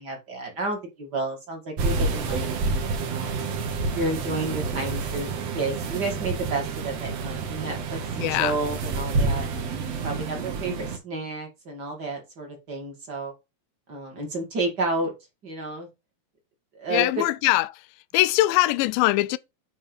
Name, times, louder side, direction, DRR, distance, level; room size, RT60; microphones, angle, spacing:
voice 1, 0.0-2.5 3.1-3.5 3.9-9.5 10.0-13.3 13.9-15.1 15.4-15.9 16.7-17.2, right 2 dB, 35° right, 2.1 m, -31 dB
sound 1, 1.8-11.0, right 4 dB, 55° right, 1.9 m, -28 dB
voice 2, 8.2-8.6 16.9-17.9 18.1-19.4, left 18 dB, 85° left, 2.2 m, -22 dB
9.1 x 3.4 x 5.2 m
omnidirectional pair, 4.1 m